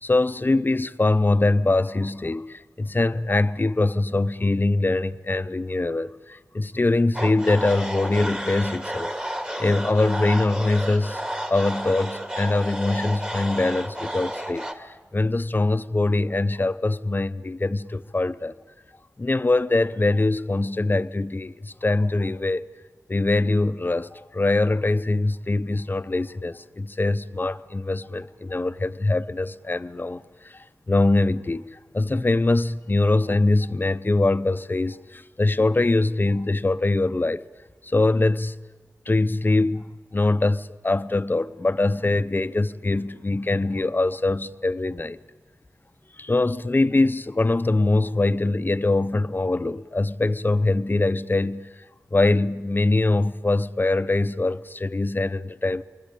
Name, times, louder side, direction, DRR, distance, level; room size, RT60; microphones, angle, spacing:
voice 1, 0.0-9.2 9.6-11.2 11.5-18.5 19.2-22.7 23.1-37.5 37.8-38.6 39.1-45.2 46.2-51.8 52.1-55.8, left 2 dB, 35° left, 0.8 m, -23 dB
sound 1, 7.1-14.7, right 1 dB, 20° right, 2.2 m, -31 dB
28.5 x 21.5 x 8.5 m
wide cardioid pair, 70°, 6 cm